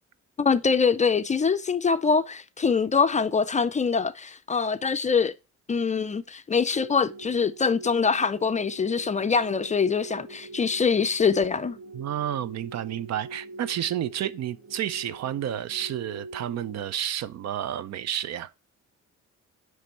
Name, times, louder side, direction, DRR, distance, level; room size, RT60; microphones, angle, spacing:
voice 1, 0.4-5.3 5.7-11.8, left 5 dB, 25° left, 0.4 m, -24 dB
sound 1, 6.7-16.9, right 2 dB, 45° right, 1.0 m, -44 dB
voice 2, 11.9-18.5, right 11 dB, 60° right, 0.5 m, -30 dB
9.6 x 3.3 x 4.4 m
cardioid pair, 90°, 30 cm